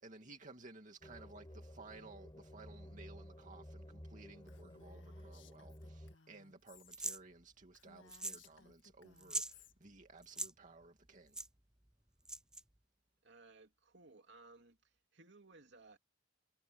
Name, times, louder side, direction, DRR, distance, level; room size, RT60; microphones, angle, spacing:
voice 1, 0.0-11.4, right 3 dB, 40° right, 2.5 m, -57 dB
sound 1, 1.0-6.1, equal, 25° left, 4.3 m, -53 dB
Female speech woman speaking, 4.5-7.0 7.3-7.4 7.7-9.7, left 5 dB, 75° left, 1.8 m, -64 dB
sound 2, 6.9-7.2 8.1-8.5 8.7-8.8 9.2-9.5 10.2-10.5 11.3-11.5 12.2-12.6, right 2 dB, 5° right, 0.3 m, -41 dB
voice 2, 13.2-16.0, right 3 dB, 65° right, 3.2 m, -60 dB
head